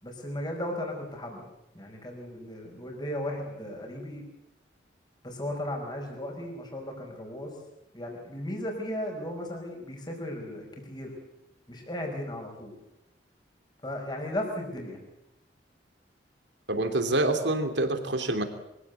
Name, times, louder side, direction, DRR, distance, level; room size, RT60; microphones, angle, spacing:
voice 1, 0.0-1.5 1.7-4.2 5.2-7.5 7.9-11.1 11.7-12.7 13.8-15.0, left 1 dB, 25° left, 1 dB, 5.2 m, -36 dB
voice 2, 16.7-18.4, right 2 dB, 75° right, 7 dB, 3.0 m, -26 dB
24.0 x 16.5 x 8.3 m, 0.88 s
head